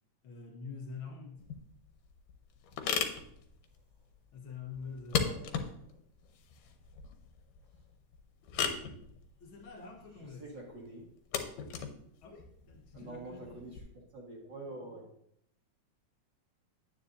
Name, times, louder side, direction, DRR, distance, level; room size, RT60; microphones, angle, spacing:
voice 1, 0.2-1.5 4.3-5.8 9.4-10.5 12.2-13.8, left 4 dB, 65° left, 2 dB, 1.2 m, -46 dB
sound 1, 1.4-13.8, left 6 dB, 85° left, 2.4 m, -38 dB
voice 2, 5.1-5.9 10.4-11.1 12.9-13.7 14.1-15.1, right 2 dB, 40° right, -2 dB, 2.0 m, -46 dB
9.7 x 9.5 x 2.6 m, 0.69 s
omnidirectional pair, 3.7 m